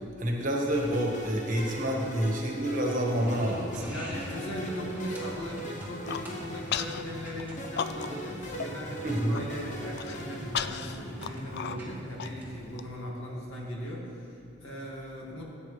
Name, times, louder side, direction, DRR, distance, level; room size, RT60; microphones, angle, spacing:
voice 1, 0.0-4.0 9.0-9.4, right 1 dB, 45° right, -1 dB, 1.6 m, -28 dB
sound 1, 0.7-11.4, equal, 40° left, 1.1 m, -41 dB
voice 2, 1.9-2.4 3.8-15.4, equal, 80° left, -3 dB, 2.1 m, -39 dB
sound 2, 3.1-12.6, equal, 10° right, 1.9 m, -43 dB
Human voice, 5.8-6.3 6.7-7.0 7.4-8.3 8.6-8.7 9.1-9.4 9.9-12.8, left 8 dB, 55° left, 0.3 m, -35 dB
16.0 x 8.6 x 3.3 m, 2.6 s
head